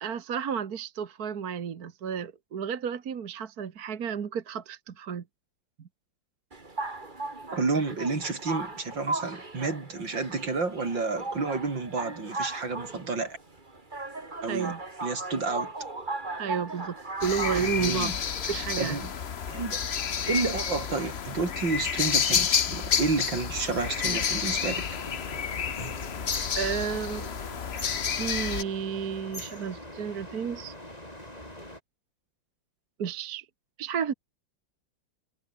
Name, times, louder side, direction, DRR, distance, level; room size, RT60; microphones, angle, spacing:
voice 1, 0.0-5.2 14.5-14.8 16.4-18.1 18.5-19.0 26.6-27.3 28.1-30.7 33.0-33.5 33.8-34.1, right 7 dB, 55° right, 1.8 m, -32 dB
sound 1, 6.5-21.4, right 2 dB, 25° right, 2.8 m, -38 dB
voice 2, 7.5-13.4 14.4-14.7 15.0-15.7 17.5-18.2 18.5-19.1 19.5-19.8 20.3-24.8, right 4 dB, 80° right, 4.8 m, -30 dB
sound 2, 17.2-28.6, left 7 dB, 45° left, 1.0 m, -30 dB
sound 3, 23.7-31.8, left 1 dB, 20° left, 8.1 m, -42 dB
omnidirectional pair, 2.0 m